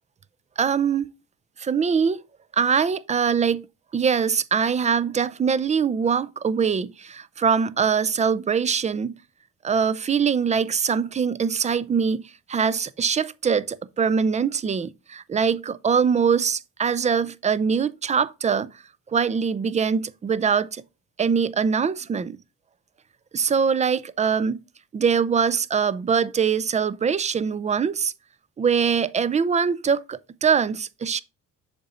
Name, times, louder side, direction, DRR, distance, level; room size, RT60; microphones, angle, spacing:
voice 1, 0.6-1.1 1.6-2.2 2.5-3.6 3.9-9.1 9.6-12.2 12.5-18.7 19.1-20.8 21.2-22.4 23.3-24.6 24.9-28.1 28.6-31.2, right 6 dB, 20° right, 0.3 m, -23 dB
6.9 x 3.8 x 4.1 m
supercardioid pair, 80°, 34 cm